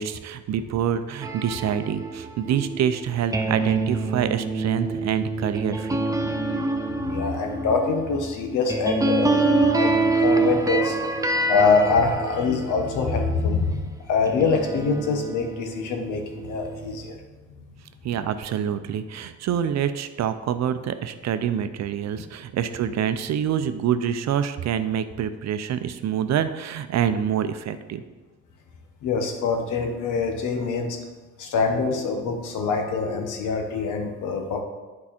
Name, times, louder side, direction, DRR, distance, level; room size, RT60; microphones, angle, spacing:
voice 1, 0.0-6.0 18.0-28.0, right 9 dB, 60° right, 11 dB, 0.6 m, -26 dB
sound 1, 1.2-13.8 14.2-17.2, right 2 dB, 10° right, 0.5 m, -26 dB
voice 2, 7.1-13.8 14.1-17.2 29.0-31.0 31.4-34.6, left 4 dB, 85° left, 4 dB, 1.2 m, -24 dB
8.6 x 4.7 x 4.3 m, 1.3 s
cardioid pair, 90°, 30 cm